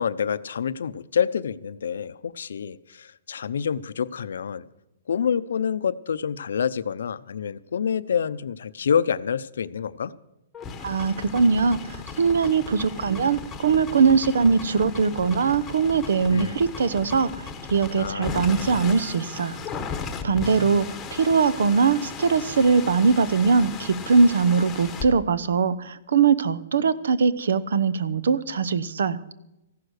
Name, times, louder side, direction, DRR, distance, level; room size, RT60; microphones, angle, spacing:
voice 1, 0.0-4.6 5.1-10.1 16.3-16.6 18.0-18.8 20.2-20.8, left 7 dB, 85° left, 15 dB, 0.7 m, -27 dB
sound 1, 10.5-25.1, left 5 dB, 10° left, 1.1 m, -36 dB
voice 2, 10.8-19.6 20.2-29.2, right 5 dB, 80° right, 16 dB, 0.9 m, -21 dB
15.5 x 11.5 x 6.5 m, 0.89 s
hypercardioid pair, 175°, 0 cm